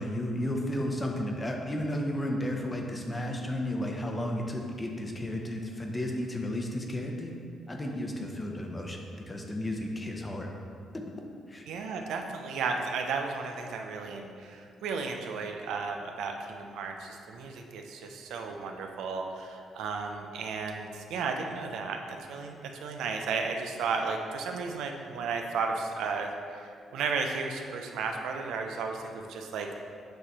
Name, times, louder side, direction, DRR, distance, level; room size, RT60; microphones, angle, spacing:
voice 1, 0.0-7.3 7.7-10.5 10.9-11.0 11.5-11.7, left 1 dB, 20° left, 1 dB, 0.8 m, -33 dB
voice 2, 11.7-22.0 22.3-29.8, right 4 dB, 85° right, 3 dB, 0.5 m, -34 dB
7.9 x 3.2 x 4.2 m, 2.3 s
cardioid pair, 90°, 0 cm